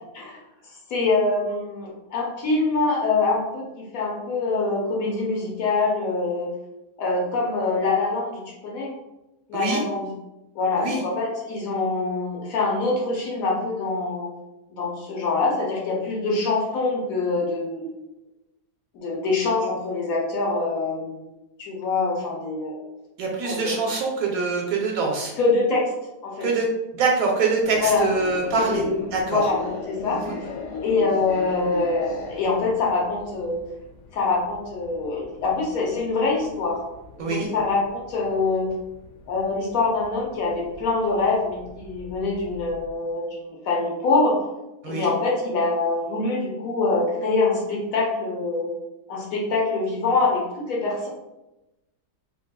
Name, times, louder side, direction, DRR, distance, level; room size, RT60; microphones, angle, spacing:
voice 1, 0.9-6.5 7.0-8.9 9.5-10.1 10.5-14.3 14.7-17.8 18.9-21.2 21.6-22.8 23.4-23.7 25.4-25.9 26.2-26.5 27.8-28.0 28.5-29.6 29.9-30.2 30.8-33.6 34.1-36.8 37.1-38.7 39.3-44.4 44.8-48.7 49.1-51.1, left 3 dB, 65° left, -2 dB, 1.0 m, -24 dB
voice 2, 23.2-25.3 26.4-26.7 26.9-28.8 29.1-29.4 30.1-30.4 37.2-37.5 44.8-45.1, right 4 dB, 70° right, 0 dB, 0.9 m, -24 dB
sound 1, 27.6-42.9, left 4 dB, 85° left, 1.3 m, -39 dB
4.4 x 2.2 x 2.2 m, 0.97 s
omnidirectional pair, 1.7 m